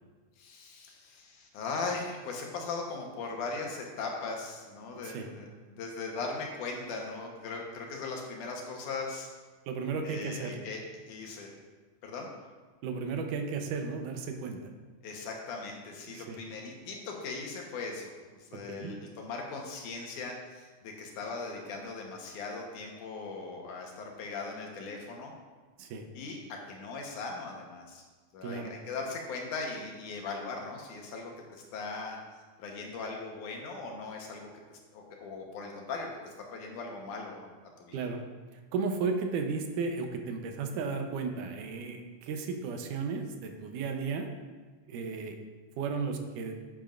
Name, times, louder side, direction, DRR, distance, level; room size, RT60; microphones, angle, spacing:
voice 1, 0.4-9.3 10.0-10.8 11.1-11.5 12.0-12.3 15.0-25.3 26.2-28.0 28.3-32.2 32.6-34.5 34.9-37.5 37.8-38.1, left 4 dB, 80° left, 0 dB, 2.6 m, -39 dB
voice 2, 9.7-10.6 12.8-14.6 16.2-16.4 18.7-18.9 25.8-26.1 28.4-28.8 37.9-38.2 38.7-44.3 44.9-45.4 45.8-46.5, right 4 dB, 85° right, 4 dB, 2.4 m, -34 dB
10.5 x 8.7 x 2.5 m, 1.4 s
omnidirectional pair, 3.5 m